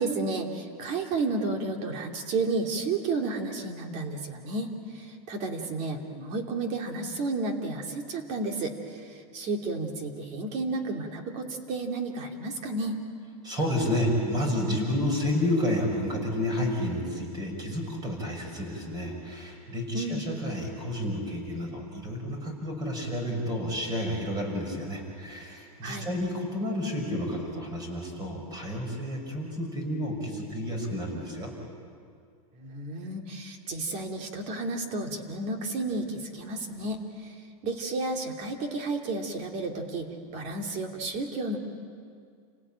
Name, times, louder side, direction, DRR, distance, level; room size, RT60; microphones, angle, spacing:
voice 1, 0.0-13.0 19.9-20.2 25.8-26.1 32.5-41.6, right 3 dB, 35° right, 3 dB, 3.0 m, -32 dB
voice 2, 13.4-31.5, left 1 dB, 20° right, 2 dB, 6.1 m, -30 dB
29.5 x 17.5 x 9.0 m, 2.2 s
supercardioid pair, 155°, 20 cm